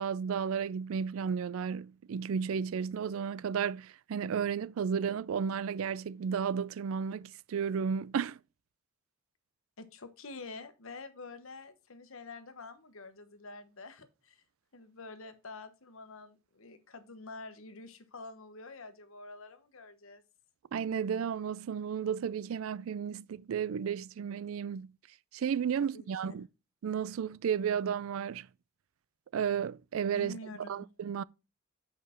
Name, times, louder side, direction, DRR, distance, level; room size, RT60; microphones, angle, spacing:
voice 1, 0.0-8.4 20.7-24.9 25.3-26.5 26.8-28.5 29.3-30.4 30.7-31.2, right 7 dB, 65° right, 0.3 m, -33 dB
voice 2, 9.8-14.4 14.7-20.2 25.8-26.3 30.1-30.9, left 3 dB, 65° left, 1.1 m, -47 dB
6.4 x 5.1 x 5.6 m
head